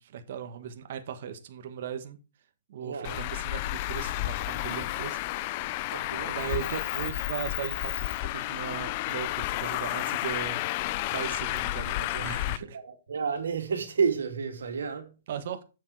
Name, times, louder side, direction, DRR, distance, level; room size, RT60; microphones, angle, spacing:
voice 1, 0.0-2.2 2.7-5.2 5.5-5.9 6.2-10.7 11.1-12.8 15.3-15.6, right 8 dB, 50° right, 1.4 m, -38 dB
voice 2, 2.8-3.2 5.9-6.3 12.6-15.2, right 6 dB, 80° right, 2.5 m, -31 dB
Traffic noise roadway noise, 3.0-12.6, left 17 dB, 35° left, 0.4 m, -31 dB
7.4 x 7.1 x 4.7 m
hypercardioid pair, 155°, 0 cm